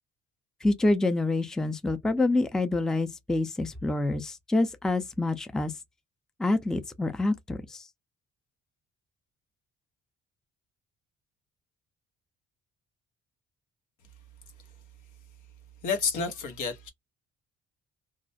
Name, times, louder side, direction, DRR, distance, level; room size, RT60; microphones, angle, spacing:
voice 1, 0.6-5.7 6.4-7.8, left 2 dB, ahead, 0.4 m, -27 dB
voice 2, 15.8-16.9, left 5 dB, 75° left, 0.9 m, -29 dB
2.4 x 2.1 x 2.6 m
cardioid pair, 90°, 30 cm